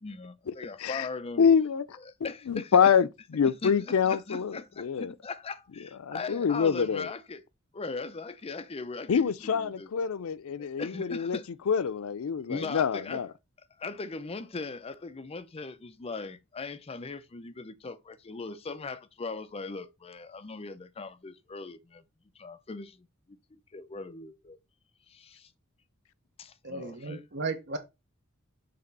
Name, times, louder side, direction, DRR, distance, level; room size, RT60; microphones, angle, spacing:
voice 1, 0.0-1.5 2.1-2.9 3.6-7.4 7.7-9.9 10.6-11.5 12.4-13.2 13.8-22.0 22.4-24.6 25.1-25.5 26.4-27.3, left 3 dB, 30° left, 0.5 m, -39 dB
voice 2, 1.4-2.0 2.5-5.1 6.0-7.1 9.1-11.4 11.7-13.3, left 7 dB, 90° left, 0.4 m, -26 dB
voice 3, 26.6-27.8, right 3 dB, 55° right, 0.8 m, -35 dB
6.8 x 2.9 x 5.3 m
head